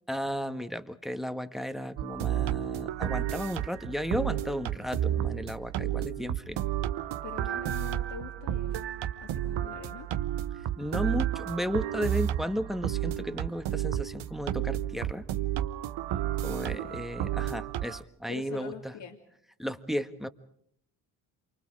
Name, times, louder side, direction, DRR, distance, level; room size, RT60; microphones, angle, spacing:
voice 1, 0.1-6.6 10.8-15.3 16.4-18.9 19.6-20.3, equal, ahead, 10 dB, 1.6 m, -34 dB
sound 1, 2.0-18.0, right 12 dB, 60° right, 1.1 m, -32 dB
voice 2, 7.2-8.8 9.2-10.1 16.7-17.1 18.3-19.2, left 7 dB, 55° left, 2 dB, 2.6 m, -44 dB
28.0 x 24.0 x 5.0 m, 0.69 s
hypercardioid pair, 50°, 49 cm